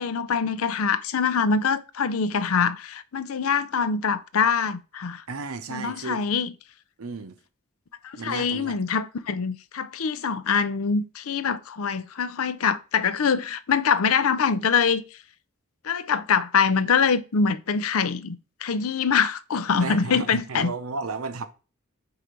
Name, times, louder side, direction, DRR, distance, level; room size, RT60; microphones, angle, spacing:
voice 1, 0.0-5.2 5.7-6.5 8.0-15.0 15.8-20.7, left 6 dB, 75° left, 0.5 m, -24 dB
voice 2, 5.3-6.2 7.0-7.4 8.1-8.8 19.7-21.5, right 3 dB, 80° right, 0.8 m, -33 dB
4.8 x 4.4 x 5.2 m
head